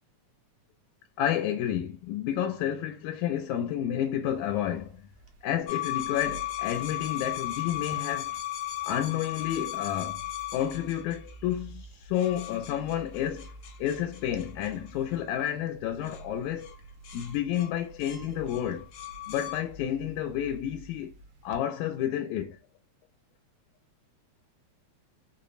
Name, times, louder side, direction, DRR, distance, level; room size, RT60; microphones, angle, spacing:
voice 1, 1.2-5.0 5.4-8.4 8.8-10.2 10.5-13.5 13.8-16.7 17.1-18.9 19.3-21.1 21.4-22.6, left 10 dB, 85° left, 1.9 m, -30 dB
sound 1, 4.2-21.6, right 2 dB, 85° right, 2.0 m, -50 dB
sound 2, 5.7-11.6 12.2-15.5 16.0-16.2 16.6-16.8 17.0-19.6, left 14 dB, 70° left, 1.5 m, -37 dB
5.1 x 2.1 x 2.4 m
omnidirectional pair, 3.3 m